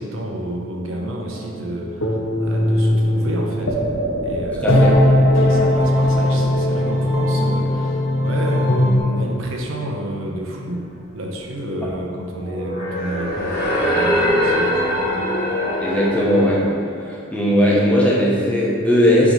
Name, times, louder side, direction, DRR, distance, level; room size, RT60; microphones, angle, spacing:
voice 1, 0.0-3.8 4.2-10.8 11.1-15.3, right 1 dB, 75° right, -1 dB, 0.9 m, -30 dB
sound 1, 0.9-9.0, left 1 dB, 80° left, 1.0 m, -19 dB
voice 2, 4.6-5.0 15.8-16.6 17.0-19.3, equal, 5° left, -6 dB, 1.0 m, -17 dB
sound 2, 12.2-16.6, equal, 45° left, 1.4 m, -22 dB
7.3 x 3.2 x 5.3 m, 2.6 s
head